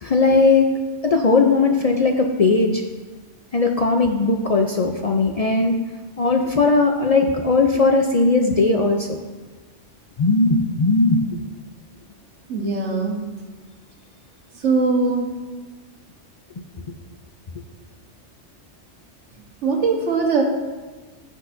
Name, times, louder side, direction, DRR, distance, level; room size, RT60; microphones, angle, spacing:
voice 1, 0.0-0.7 1.0-2.8 3.5-5.8 6.2-9.2 10.2-11.2, left 3 dB, 45° left, 3 dB, 0.5 m, -18 dB
voice 2, 12.5-13.2 14.6-15.3 19.6-20.4, right 4 dB, 85° right, 1 dB, 1.6 m, -20 dB
15.5 x 6.3 x 2.6 m, 1.3 s
omnidirectional pair, 1.2 m